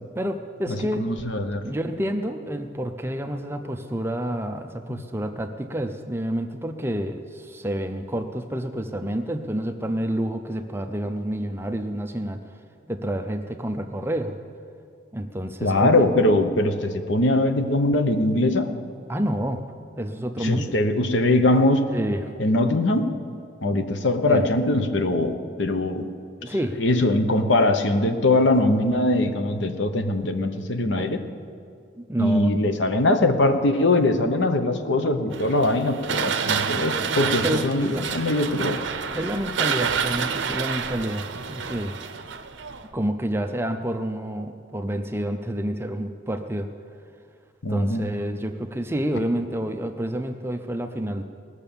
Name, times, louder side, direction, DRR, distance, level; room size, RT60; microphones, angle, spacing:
voice 1, 0.2-1.1 1.6-12.4 12.9-14.4 15.1-16.0 19.1-19.6 20.0-20.8 21.9-22.4 24.3-24.4 26.4-26.8 30.9-31.2 32.0-32.5 36.1-36.5 37.4-38.1 39.1-42.0 42.9-46.7 47.7-51.2, right 1 dB, 10° right, 6 dB, 0.5 m, -29 dB
voice 2, 0.7-1.6 15.6-18.7 20.4-21.9 22.4-23.1 23.6-26.1 26.8-31.2 32.2-38.8 47.6-48.1, left 2 dB, 65° left, 7 dB, 0.9 m, -22 dB
sound 1, 35.3-42.9, right 6 dB, 65° right, 0.7 m, -28 dB
19.0 x 6.6 x 7.0 m, 2.4 s
head